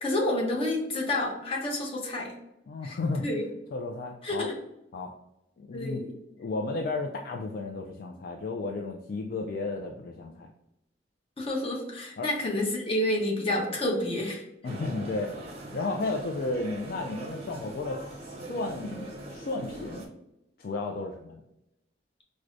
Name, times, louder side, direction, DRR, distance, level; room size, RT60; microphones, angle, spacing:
voice 1, 0.0-2.3 2.8-3.4 4.2-4.5 5.7-6.1 11.4-14.4, left 1 dB, 30° left, -1 dB, 0.8 m, -29 dB
voice 2, 2.7-3.2 3.7-4.5 4.9-5.1 5.6-6.0 6.4-10.5 12.2-12.3 14.6-15.3 15.7-20.0 20.6-21.4, left 3 dB, 55° left, 2 dB, 0.3 m, -33 dB
sound 1, 14.6-20.1, right 1 dB, 35° right, 0.6 m, -41 dB
4.6 x 2.1 x 2.5 m, 0.84 s
head